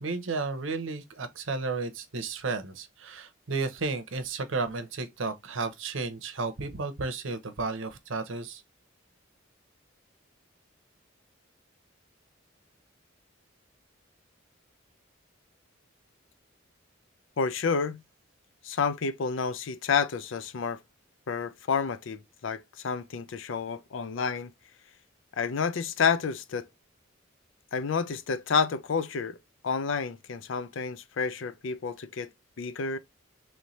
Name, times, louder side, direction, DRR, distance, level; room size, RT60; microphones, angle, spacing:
voice 1, 0.0-8.6, right 3 dB, 75° right, 0.8 m, -33 dB
voice 2, 17.4-18.0 18.6-20.8 21.3-24.5 25.4-26.7 27.7-29.4 29.6-32.3 32.6-33.0, left 5 dB, 70° left, 0.5 m, -29 dB
3.2 x 3.2 x 4.0 m
head